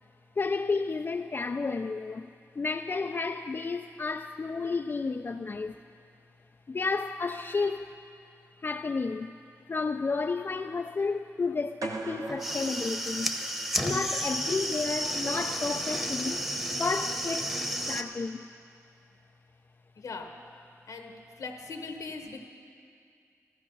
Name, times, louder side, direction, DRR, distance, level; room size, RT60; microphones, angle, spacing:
voice 1, 0.4-2.3 2.6-5.8 6.7-7.9 8.6-9.3 9.7-13.3 13.8-16.4 16.8-17.5 17.9-18.5, left 4 dB, 40° left, 0.4 m, -31 dB
sound 1, 11.8-13.9, right 3 dB, 75° right, 1.1 m, -39 dB
sound 2, 12.3-18.0, equal, 5° right, 1.1 m, -32 dB
voice 2, 19.9-20.3 20.9-22.5, left 4 dB, 80° left, 1.2 m, -40 dB
14.5 x 13.5 x 5.5 m
cardioid pair, 70°, 6 cm